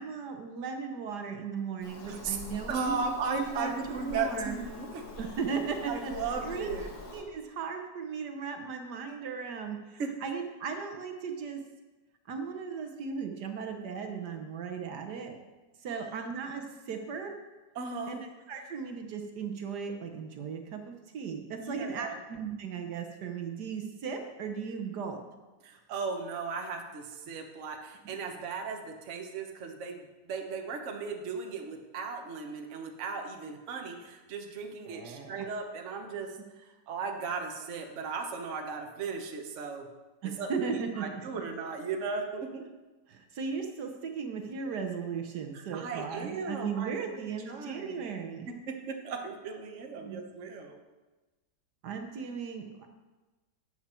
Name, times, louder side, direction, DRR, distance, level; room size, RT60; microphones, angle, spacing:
voice 1, 0.0-4.6 5.2-6.1 6.4-6.7 7.1-11.6 12.3-15.3 15.8-17.4 18.1-18.2 18.5-25.2 34.9-35.5 40.2-41.2 43.1-48.5 50.0-50.2 51.8-52.9, right 5 dB, 70° right, 5 dB, 1.5 m, -37 dB
Bird vocalization bird call bird song, 1.8-7.2, left 2 dB, 90° left, 2.4 m, -45 dB
voice 2, 2.7-5.1 5.8-6.9 10.0-10.1 17.7-18.2 21.6-22.2 25.6-36.3 36.6-39.9 40.4-40.5 40.7-42.6 45.5-48.1 48.4-50.8, right 4 dB, 50° right, 3 dB, 1.3 m, -36 dB
12.0 x 8.3 x 4.4 m, 1.2 s
omnidirectional pair, 1.9 m